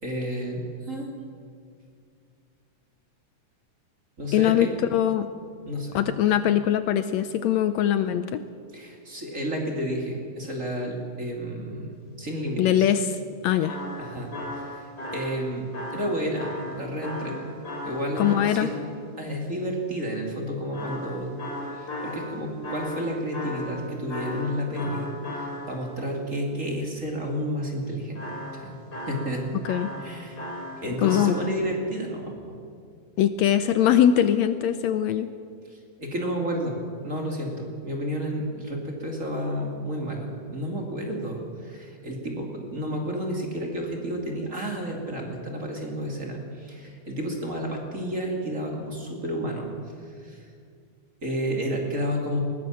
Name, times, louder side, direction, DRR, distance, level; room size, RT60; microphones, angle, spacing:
voice 1, 0.0-1.1 4.2-4.7 5.7-6.0 8.7-11.9 12.2-12.9 14.0-17.5 17.8-18.8 19.2-21.3 21.7-29.4 30.0-30.5 30.8-32.5 35.7-49.7 50.0-50.5 51.2-52.4, equal, 25° right, 1 dB, 2.8 m, -31 dB
voice 2, 4.3-5.3 5.9-8.4 12.6-13.2 13.4-13.8 18.2-18.7 29.7-29.9 31.0-31.4 33.2-35.3, left 10 dB, 75° left, 11 dB, 1.8 m, -22 dB
sound 1, 13.6-18.9 20.7-26.0 28.2-31.5, left 1 dB, 45° left, 4.5 m, -36 dB
20.5 x 19.5 x 7.6 m, 2.2 s
omnidirectional pair, 3.4 m